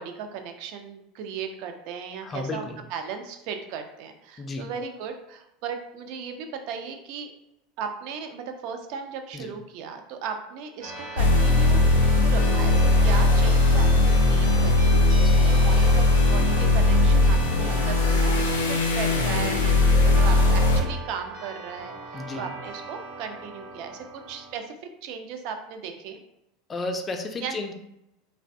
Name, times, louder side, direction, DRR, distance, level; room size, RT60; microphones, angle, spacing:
voice 1, 0.0-7.3 7.8-19.8 20.0-24.7 25.0-26.2 27.4-27.6, right 6 dB, 60° right, 6 dB, 0.3 m, -36 dB
voice 2, 2.2-2.8 4.4-4.7 9.3-9.5 15.1-15.5 22.1-22.5 26.7-27.7, left 3 dB, 25° left, 5 dB, 0.4 m, -33 dB
sound 1, 10.8-24.5, right 1 dB, 80° right, 1.1 m, -39 dB
sound 2, 11.2-20.8, left 2 dB, 90° left, 0.4 m, -19 dB
2.5 x 2.1 x 2.5 m, 0.82 s
hypercardioid pair, 90°, 0 cm